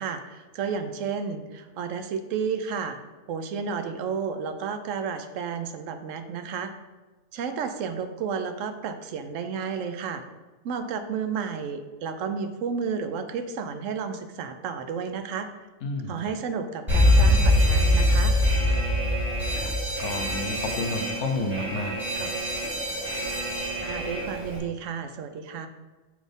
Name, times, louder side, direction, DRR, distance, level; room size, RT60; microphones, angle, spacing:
voice 1, 0.0-3.0 3.3-6.7 7.3-10.2 10.6-15.5 16.1-18.3 23.8-25.7, right 6 dB, 80° right, 8 dB, 1.0 m, -32 dB
voice 2, 15.8-16.3 19.5-19.7 20.0-22.3, left 2 dB, 70° left, 5 dB, 1.0 m, -31 dB
Alarm, 16.9-24.6, left 1 dB, 20° right, 1.4 m, -24 dB
5.0 x 4.1 x 5.2 m, 1.2 s
omnidirectional pair, 1.3 m